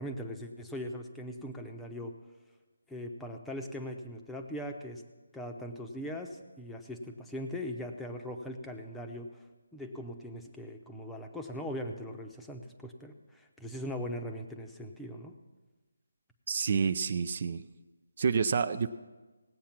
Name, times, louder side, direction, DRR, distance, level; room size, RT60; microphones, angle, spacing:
voice 1, 0.0-2.1 2.9-5.0 5.3-9.3 9.7-15.3, equal, 5° left, 2 dB, 0.8 m, -40 dB
voice 2, 16.5-17.6 18.2-18.9, right 6 dB, 45° right, 11 dB, 0.5 m, -28 dB
17.5 x 8.4 x 5.9 m, 1.2 s
figure-of-eight pair, 160°, 0 cm